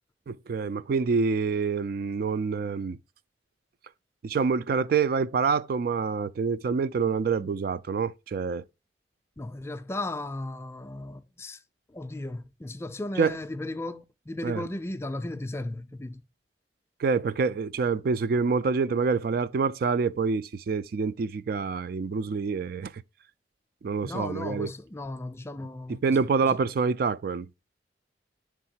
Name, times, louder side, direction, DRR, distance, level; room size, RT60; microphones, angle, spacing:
voice 1, 0.3-3.0 4.2-8.6 13.2-13.4 14.4-14.6 17.0-22.9 23.8-24.7 25.9-27.5, right 5 dB, 55° right, 0.3 m, -26 dB
voice 2, 9.4-11.6 11.9-16.2 24.0-26.2 26.4-26.6, left 2 dB, 15° left, 0.4 m, -36 dB
7.1 x 3.6 x 4.2 m
head